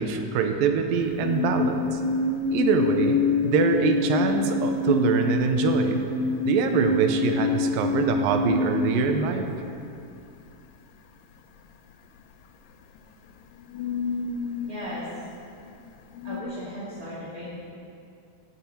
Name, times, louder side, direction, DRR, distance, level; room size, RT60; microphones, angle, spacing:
voice 1, 0.0-2.0 2.5-3.2 3.4-6.0 6.5-9.5, right 6 dB, 85° right, 6 dB, 2.5 m, -24 dB
sound 1, 1.0-9.7 13.0-13.1 13.6-15.2 15.5-16.4, left 4 dB, 75° left, 2.3 m, -26 dB
voice 2, 14.7-15.7 16.2-17.5, equal, 30° right, -10 dB, 2.1 m, -37 dB
16.0 x 9.1 x 4.4 m, 2.5 s
omnidirectional pair, 4.0 m